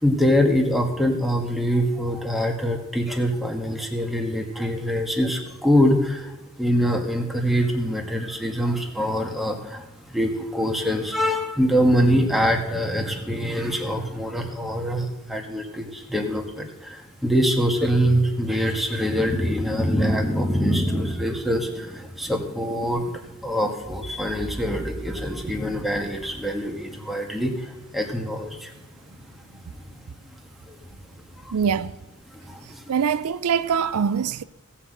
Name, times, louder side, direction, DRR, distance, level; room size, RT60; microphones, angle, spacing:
voice 1, 0.0-28.7 30.7-30.8 31.3-31.5 32.3-32.9, equal, ahead, 1.4 m, -24 dB
voice 2, 31.5-31.9 32.9-34.4, right 7 dB, 85° right, 0.5 m, -23 dB
17.0 x 5.8 x 7.7 m
head